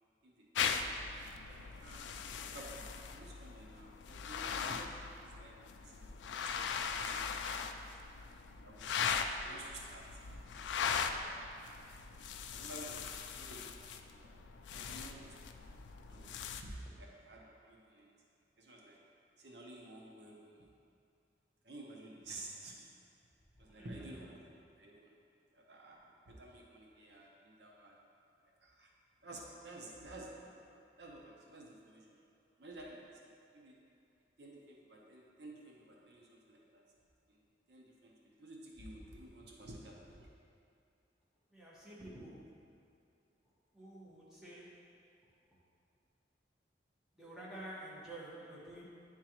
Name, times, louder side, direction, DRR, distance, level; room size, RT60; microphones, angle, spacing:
voice 1, 0.2-1.1 1.4-2.1 2.4-8.0 8.6-10.2 10.5-11.4 12.5-14.3 14.7-15.7 16.1-16.3 16.6-18.1 18.6-19.0 19.4-20.7 21.6-23.0 23.6-24.5 24.8-25.1 25.5-28.0 28.6-28.9 29.2-32.3 32.6-33.8 34.4-36.8 37.3-37.4 37.7-40.3, right 1 dB, 70° right, -2 dB, 0.8 m, -53 dB
sound 1, 0.5-16.6, left 6 dB, 90° left, 0.3 m, -40 dB
voice 2, 23.6-24.0 41.5-42.6 43.7-44.9 47.1-48.9, right 1 dB, 5° right, -9 dB, 1.2 m, -50 dB
9.7 x 3.7 x 3.0 m, 2.5 s
head